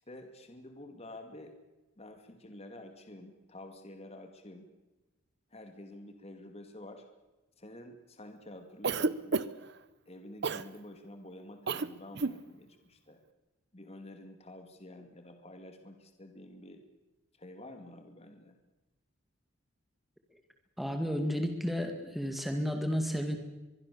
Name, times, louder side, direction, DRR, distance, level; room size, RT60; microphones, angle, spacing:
voice 1, 0.1-1.6 2.0-4.7 5.5-7.0 7.6-9.6 10.1-13.2 13.7-16.8 17.4-18.6, left 1 dB, 30° left, 6 dB, 2.4 m, -49 dB
Cough, 8.8-9.7 10.4-10.7 11.7-11.9 12.1-12.4, right 4 dB, 55° right, 0.8 m, -30 dB
voice 2, 20.8-23.4, equal, ahead, 5 dB, 2.2 m, -32 dB
24.0 x 22.0 x 6.9 m, 1.1 s
head